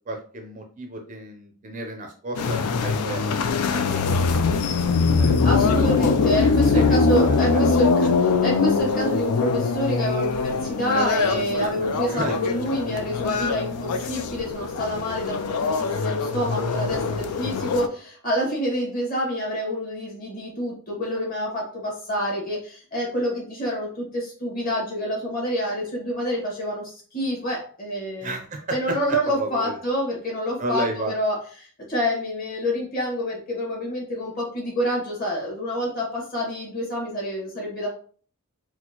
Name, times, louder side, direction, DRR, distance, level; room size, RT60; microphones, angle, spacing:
voice 1, 0.1-5.4 6.7-7.6 11.6-12.4 28.2-29.0 29.3-29.8 30.6-31.1, right 2 dB, 35° right, 3 dB, 0.4 m, -33 dB
sound 1, 2.4-17.9, left 4 dB, 90° left, 0.4 m, -22 dB
voice 2, 5.4-28.4 28.7-37.9, equal, 40° left, -4 dB, 1.6 m, -27 dB
4.3 x 2.1 x 2.8 m, 0.44 s
head